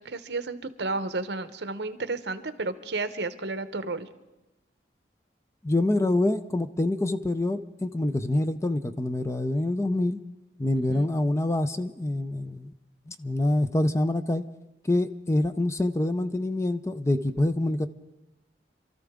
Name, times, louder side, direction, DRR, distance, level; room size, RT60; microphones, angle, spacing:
voice 1, 0.0-4.1 10.7-11.1, right 3 dB, 65° right, 11 dB, 0.9 m, -32 dB
voice 2, 5.6-10.2 10.6-12.7 13.1-14.4 14.8-17.9, left 1 dB, 15° left, 11 dB, 0.5 m, -26 dB
27.0 x 13.5 x 3.7 m, 0.96 s
head